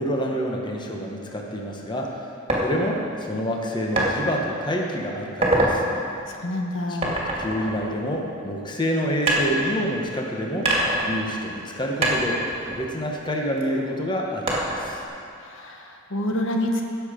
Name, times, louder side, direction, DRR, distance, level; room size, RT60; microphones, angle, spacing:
voice 1, 0.0-2.3 2.6-5.8 6.9-7.0 7.3-10.7 11.0-15.0, equal, 25° left, 0 dB, 1.1 m, -27 dB
sound 1, 2.5-2.7 4.0-4.1 4.7-4.9 5.3-5.8 7.0-8.5 9.3-10.2 10.7-11.7 12.0-13.6 14.5-15.1, right 1 dB, 30° right, 2.3 m, -24 dB
voice 2, 6.3-7.1 15.4-16.8, left 1 dB, 65° left, 2 dB, 1.1 m, -27 dB
17.0 x 7.1 x 5.1 m, 2.6 s
head